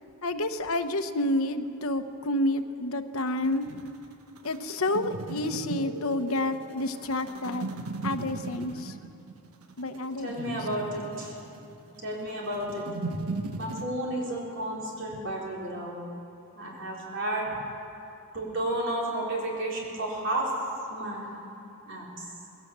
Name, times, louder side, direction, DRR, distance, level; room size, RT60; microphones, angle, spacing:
voice 1, 0.2-3.9 4.4-7.7 8.0-8.9 9.8-10.6, left 1 dB, 75° left, 8 dB, 1.0 m, -29 dB
sound 1, 3.2-13.9, right 3 dB, 80° right, 1.1 m, -38 dB
voice 2, 10.2-11.3 12.0-12.8 13.6-16.0 16.5-17.5 18.3-20.5 20.9-21.3 21.9-22.1, right 1 dB, 60° right, -4 dB, 4.3 m, -32 dB
20.5 x 17.0 x 7.4 m, 2.7 s
head